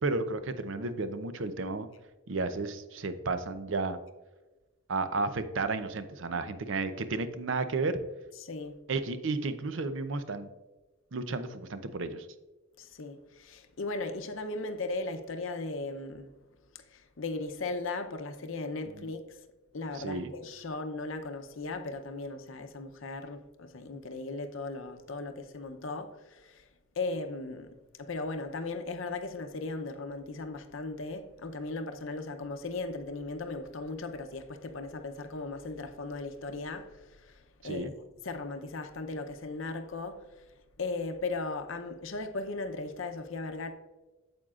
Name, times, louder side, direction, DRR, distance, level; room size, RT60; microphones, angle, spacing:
voice 1, 0.0-1.9 2.3-4.0 4.9-8.0 8.9-10.5 11.1-12.3 19.0-19.1 19.9-20.3 37.6-37.9, right 3 dB, 65° right, 0.6 m, -32 dB
voice 2, 8.4-8.7 12.8-16.3 16.9-19.3 19.7-26.6 27.0-27.7 28.0-37.4 37.6-37.9 38.2-40.3 40.8-43.7, left 3 dB, 65° left, 0.7 m, -37 dB
8.8 x 7.8 x 2.4 m
head